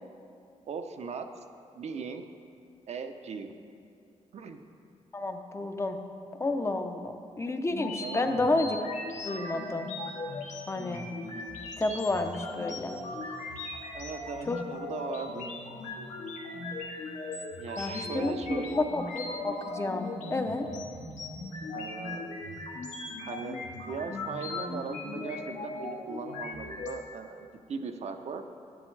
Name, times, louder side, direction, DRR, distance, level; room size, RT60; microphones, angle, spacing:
voice 1, 0.7-1.3 1.8-2.2 2.9-3.5 4.3-4.6 8.0-8.3 13.9-15.5 17.6-18.8 21.7-22.3 23.2-28.4, right 5 dB, 65° right, 6 dB, 0.6 m, -39 dB
voice 2, 5.1-6.0 6.4-8.8 9.2-9.9 10.7-11.1 11.8-13.0 14.5-14.6 17.8-20.7, left 2 dB, 20° left, 6 dB, 0.5 m, -30 dB
sound 1, 7.7-26.9, left 2 dB, 85° left, 1.4 m, -38 dB
10.5 x 10.0 x 3.2 m, 2.5 s
wide cardioid pair, 145°, 12 cm